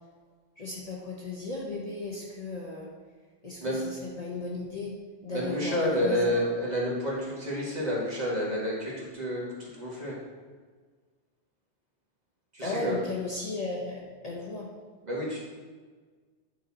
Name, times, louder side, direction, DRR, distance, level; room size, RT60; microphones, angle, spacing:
voice 1, 0.6-2.9 3.4-4.9 5.2-6.4 12.6-14.7, left 2 dB, 35° left, -3 dB, 1.0 m, -35 dB
voice 2, 5.3-10.2 12.5-13.0 15.0-15.4, equal, 35° right, -5 dB, 2.0 m, -29 dB
9.2 x 4.4 x 4.2 m, 1.5 s
omnidirectional pair, 1.2 m